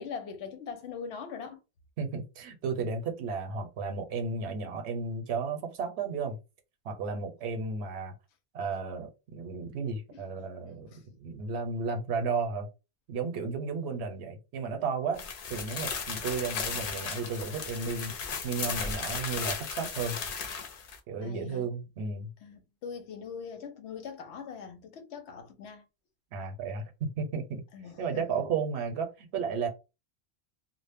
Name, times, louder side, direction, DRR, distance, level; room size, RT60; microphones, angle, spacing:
voice 1, 0.0-1.6 10.1-10.2 10.6-11.0 21.2-21.7 22.4-25.8 27.7-28.7, left 6 dB, 90° left, 0.9 m, -42 dB
voice 2, 2.0-6.4 6.8-8.1 8.5-12.7 13.1-18.1 18.4-20.2 21.1-22.3 26.3-27.6 28.0-29.7, right 5 dB, 80° right, 0.9 m, -33 dB
sound 1, 15.1-21.0, left 5 dB, 60° left, 0.7 m, -35 dB
2.1 x 2.0 x 3.3 m
omnidirectional pair, 1.1 m